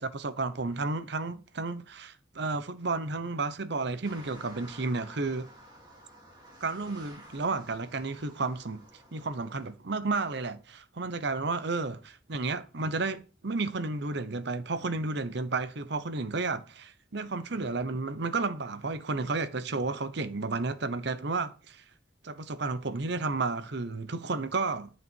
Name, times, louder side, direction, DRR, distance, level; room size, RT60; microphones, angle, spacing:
voice 1, 0.0-5.5 6.6-8.8 9.1-21.8 22.2-24.9, right 3 dB, 65° right, 0.9 m, -32 dB
sound 1, 4.0-9.7, right 1 dB, 25° right, 3.9 m, -52 dB
11.0 x 6.2 x 4.6 m
head